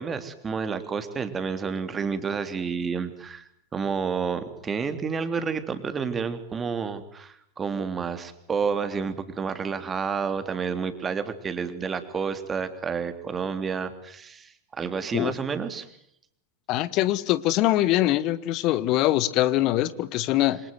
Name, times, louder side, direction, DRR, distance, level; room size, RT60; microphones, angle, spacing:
voice 1, 0.0-15.9, right 5 dB, 20° right, 9 dB, 3.3 m, -30 dB
voice 2, 16.7-20.6, left 15 dB, 40° left, 17 dB, 1.6 m, -23 dB
28.0 x 26.5 x 7.9 m, 0.71 s
figure-of-eight pair, 90°, 0 cm